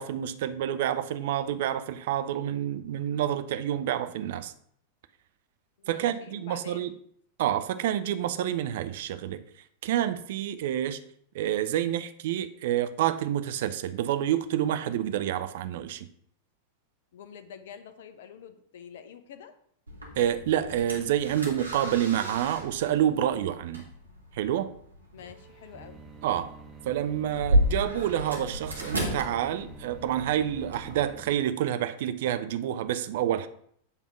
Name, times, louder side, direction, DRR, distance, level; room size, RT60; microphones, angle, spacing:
voice 1, 0.0-4.5 5.9-6.9 7.4-9.4 9.8-11.0 11.3-16.1 20.2-23.8 24.3-24.7 26.2-26.6 26.8-33.5, right 11 dB, 55° right, 0.5 m, -28 dB
voice 2, 5.8-6.9 17.1-19.5 25.1-26.0, left 8 dB, 60° left, 0.8 m, -47 dB
sound 1, 19.9-31.0, equal, 80° right, 1.8 m, -33 dB
sound 2, 25.2-31.3, right 5 dB, 20° right, 1.0 m, -48 dB
8.2 x 3.5 x 5.9 m
figure-of-eight pair, 90°, 0 cm